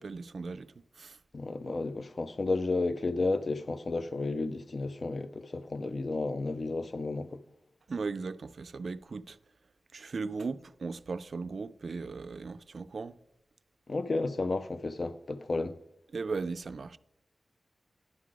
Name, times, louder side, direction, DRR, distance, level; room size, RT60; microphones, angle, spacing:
voice 1, 0.0-1.2 7.9-9.4 9.9-13.2 16.1-17.0, right 4 dB, 60° right, 0.3 m, -37 dB
voice 2, 1.3-7.4 13.9-15.8, left 3 dB, 45° left, 0.4 m, -32 dB
11.0 x 3.8 x 4.8 m
wide cardioid pair, 130°, 0 cm